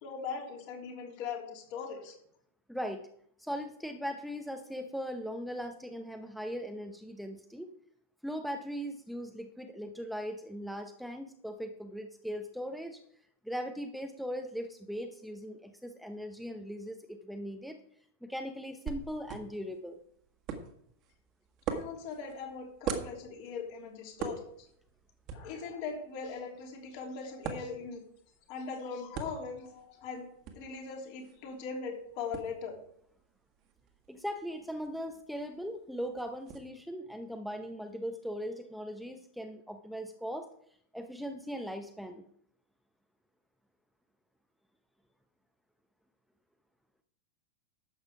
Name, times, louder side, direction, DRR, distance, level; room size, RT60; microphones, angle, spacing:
voice 1, 0.0-2.1 21.7-24.7 25.3-28.0 28.5-30.3 30.5-32.8, left 5 dB, 45° left, 1 dB, 3.2 m, -40 dB
voice 2, 2.7-3.1 3.4-7.7 8.2-13.0 13.4-17.8 18.2-20.0 34.1-40.5 40.9-42.2, equal, ahead, 6 dB, 0.8 m, -39 dB
sound 1, 18.9-36.6, right 7 dB, 40° right, 1.8 m, -45 dB
12.0 x 8.1 x 4.9 m, 0.69 s
figure-of-eight pair, 90°, 0 cm